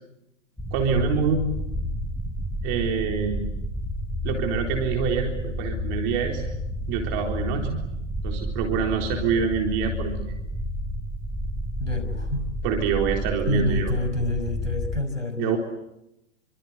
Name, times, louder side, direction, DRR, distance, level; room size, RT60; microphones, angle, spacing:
sound 1, 0.6-15.0, left 1 dB, ahead, 1.2 m, -30 dB
voice 1, 0.7-1.4 2.6-3.5 4.2-6.4 6.9-7.8 8.2-10.3 12.6-13.9 15.4-15.6, right 6 dB, 30° right, 2 dB, 3.9 m, -26 dB
voice 2, 11.8-12.5 13.5-15.6, left 2 dB, 90° left, 9 dB, 6.0 m, -27 dB
29.0 x 25.5 x 8.1 m, 0.85 s
figure-of-eight pair, 115°, 37 cm